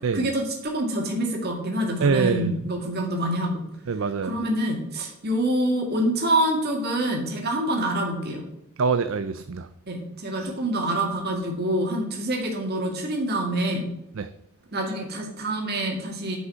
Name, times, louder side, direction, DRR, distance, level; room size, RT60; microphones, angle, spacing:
voice 1, 0.1-3.6 4.2-8.4 9.9-13.9 14.7-16.4, right 1 dB, 45° right, 2.1 m, -26 dB
voice 2, 2.0-2.5 3.9-4.4 8.8-9.7 10.4-10.5 14.2-14.3, right 5 dB, 60° right, 0.5 m, -24 dB
9.9 x 5.4 x 6.9 m
head